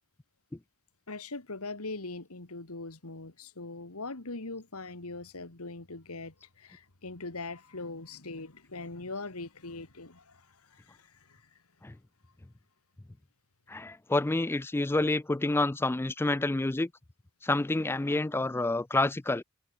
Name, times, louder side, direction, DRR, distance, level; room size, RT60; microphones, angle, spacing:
voice 1, 1.1-11.5, left 3 dB, 90° left, 2.3 m, -41 dB
voice 2, 13.7-16.9 17.4-19.4, left 2 dB, 10° left, 0.3 m, -28 dB
head